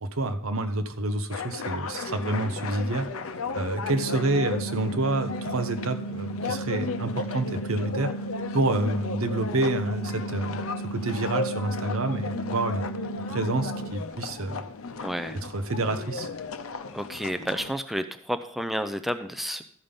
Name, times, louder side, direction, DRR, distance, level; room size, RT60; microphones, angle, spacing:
voice 1, 0.0-3.1 3.5-8.1 8.5-12.9 13.3-14.6 15.4-16.3, right 2 dB, 75° right, 8 dB, 1.0 m, -28 dB
sound 1, 1.3-17.7, left 4 dB, 75° left, 0.7 m, -35 dB
sound 2, 3.8-13.8, right 2 dB, 30° right, 1.3 m, -35 dB
voice 2, 15.0-15.4 16.9-19.6, equal, ahead, 9 dB, 0.4 m, -31 dB
13.0 x 5.6 x 5.2 m, 0.65 s
head